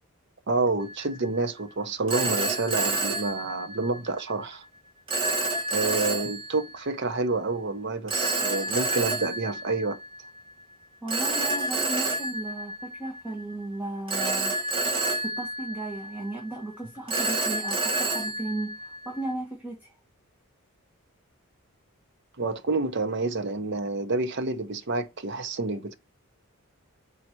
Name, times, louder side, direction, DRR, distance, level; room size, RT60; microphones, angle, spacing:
voice 1, 0.5-4.6 5.7-10.0 22.4-26.0, right 3 dB, 50° right, 0.7 m, -28 dB
Telephone, 0.8-1.1 2.1-4.1 5.1-6.8 8.1-10.3 11.1-13.4 14.1-16.4 17.1-19.3, right 2 dB, 25° right, 1.6 m, -29 dB
voice 2, 11.0-14.6 15.2-19.9, right 2 dB, 10° right, 1.3 m, -35 dB
5.6 x 4.4 x 4.5 m
head